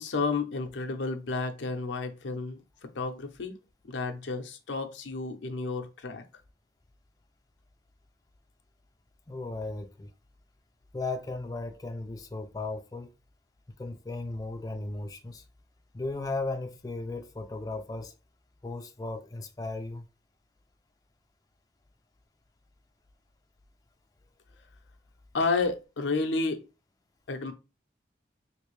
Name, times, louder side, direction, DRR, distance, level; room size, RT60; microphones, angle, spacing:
voice 1, 0.0-2.6 2.9-3.6 3.9-6.2 25.3-26.6 27.3-27.5, left 3 dB, 85° left, 0.6 m, -31 dB
voice 2, 9.3-10.1 10.9-13.1 13.8-15.4 15.9-18.1 18.6-20.1, left 2 dB, 20° left, 0.3 m, -36 dB
3.2 x 2.6 x 3.1 m
head